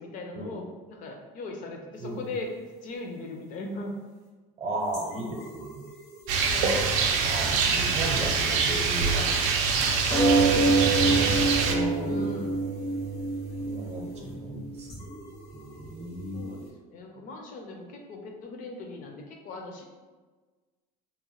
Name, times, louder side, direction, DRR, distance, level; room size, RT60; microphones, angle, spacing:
voice 1, 0.0-2.5 2.8-3.9 6.4-7.0 10.5-11.4 12.0-12.6 14.1-14.5 16.3-16.6 16.9-19.8, left 2 dB, 45° left, 2 dB, 0.4 m, -39 dB
voice 2, 2.0-2.3 4.6-5.8 7.2-9.9 10.4-11.3 11.6-12.3 13.6-15.1 15.5-16.5, right 1 dB, 35° right, -1 dB, 0.6 m, -36 dB
sound 1, 4.9-6.5 7.1-8.3 8.5-8.6 9.1-9.2 9.9-16.7, right 3 dB, 85° left, 1.2 m, -27 dB
Rain, 6.3-11.7, right 5 dB, 85° right, 0.4 m, -25 dB
2.9 x 2.0 x 2.8 m, 1.3 s
cardioid pair, 130°, 19 cm